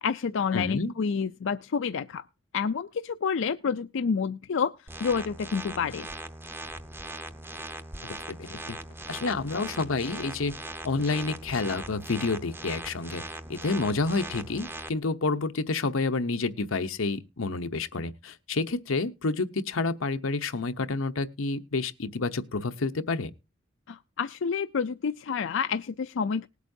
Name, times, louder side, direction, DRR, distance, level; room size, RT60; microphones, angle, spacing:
voice 1, 0.0-2.2 2.5-4.7 5.0-6.1 23.9-26.5, left 6 dB, 65° left, 0.4 m, -29 dB
voice 2, 0.5-0.9 8.0-8.8 9.1-10.5 10.8-13.2 13.5-23.3, left 3 dB, 90° left, 0.9 m, -29 dB
sound 1, 4.9-14.9, right 2 dB, 10° right, 0.7 m, -40 dB
19.5 x 8.3 x 2.7 m
head